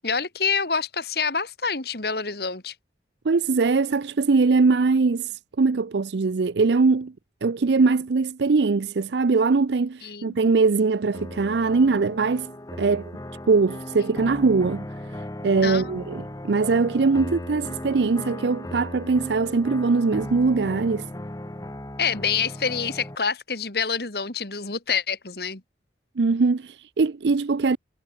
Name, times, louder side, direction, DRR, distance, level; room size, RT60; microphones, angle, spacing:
voice 1, 0.0-2.7 10.0-10.4 15.6-15.9 22.0-25.6, left 6 dB, 60° left, 2.4 m, -27 dB
voice 2, 3.2-7.1 7.4-12.5 12.8-13.1 13.5-21.1 26.2-27.8, right 4 dB, 75° right, 0.5 m, -22 dB
sound 1, 11.1-23.2, left 1 dB, 20° left, 1.0 m, -37 dB
head